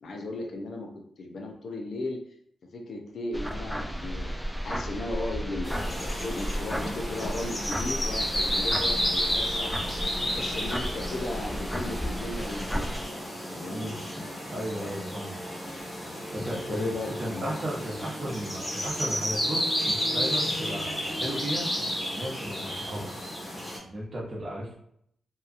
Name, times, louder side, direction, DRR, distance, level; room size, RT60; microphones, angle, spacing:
voice 1, 0.0-2.2 2.7-4.3 4.6-9.7 10.2-13.0 13.4-13.9 16.5-17.6, left 2 dB, 70° left, 2 dB, 0.5 m, -36 dB
sound 1, 3.3-13.0, equal, ahead, 0.3 m, -34 dB
sound 2, 5.6-23.8, equal, 20° left, 1.2 m, -32 dB
voice 2, 14.5-15.4 16.3-16.9 17.2-21.8 22.1-23.1 23.8-24.8, right 1 dB, 50° right, -4 dB, 0.9 m, -35 dB
2.8 x 2.3 x 2.4 m, 0.70 s
cardioid pair, 60°, 0 cm